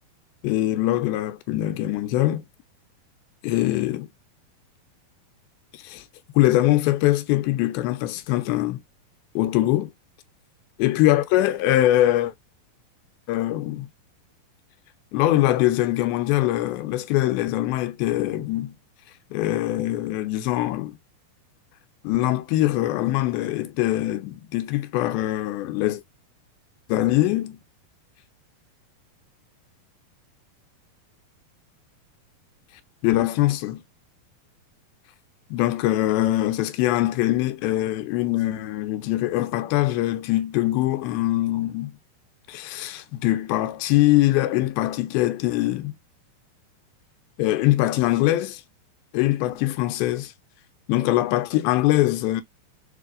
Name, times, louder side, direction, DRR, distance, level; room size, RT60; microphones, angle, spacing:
voice 1, 0.4-2.4 3.4-4.1 5.7-6.0 6.4-8.8 9.4-9.9 10.8-12.3 13.3-13.9 15.1-18.7 19.3-21.0 22.0-26.0 26.9-27.6 33.0-33.8 35.5-41.9 42.5-45.9 47.4-48.6 49.1-50.3 50.9-52.4, left 15 dB, 85° left, 2.5 m, -22 dB
6.6 x 2.7 x 2.4 m
omnidirectional pair, 4.2 m